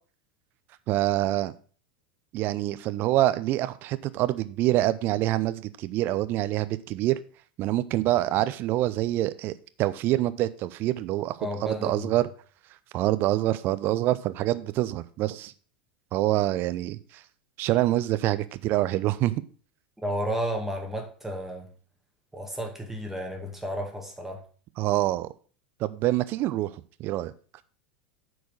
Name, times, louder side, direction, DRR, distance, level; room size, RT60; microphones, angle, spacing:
voice 1, 0.9-1.5 2.3-7.2 7.6-12.3 12.9-15.5 16.1-17.2 17.6-19.3 24.8-25.3 25.8-26.7 27.0-27.3, right 15 dB, 40° right, 0.6 m, -26 dB
voice 2, 11.4-12.1 20.0-21.7 22.3-24.4, equal, 5° right, 2.0 m, -32 dB
8.3 x 4.7 x 6.3 m
figure-of-eight pair, 85°, 5 cm